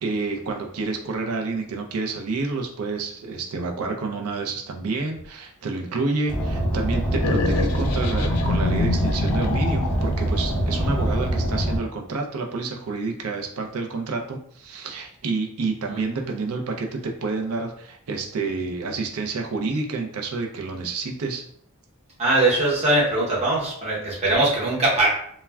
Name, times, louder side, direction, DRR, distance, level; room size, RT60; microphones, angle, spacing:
voice 1, 0.0-21.4, right 3 dB, 70° right, 2 dB, 0.5 m, -29 dB
Car, 6.3-11.8, right 1 dB, 5° left, 0.5 m, -24 dB
sound 1, 7.1-10.2, left 4 dB, 90° left, 0.4 m, -27 dB
voice 2, 22.2-25.1, right 2 dB, 30° right, -6 dB, 0.8 m, -21 dB
2.2 x 2.1 x 3.3 m, 0.67 s
head